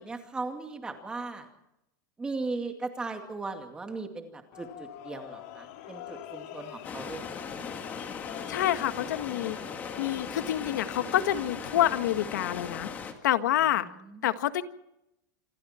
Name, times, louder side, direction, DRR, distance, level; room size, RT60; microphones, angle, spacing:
voice 1, 0.0-1.5 2.2-7.2 7.5-7.7 13.8-14.3, right 3 dB, 10° right, 5 dB, 2.4 m, -37 dB
sound 1, 4.5-11.7, left 11 dB, 45° left, 2.9 m, -46 dB
sound 2, 6.8-13.1, left 6 dB, 15° left, 2.1 m, -38 dB
voice 2, 8.5-9.6 10.0-12.9 13.2-13.9 14.2-14.6, left 12 dB, 75° left, 10 dB, 1.7 m, -27 dB
28.0 x 23.0 x 4.5 m, 0.84 s
supercardioid pair, 175°, 10 cm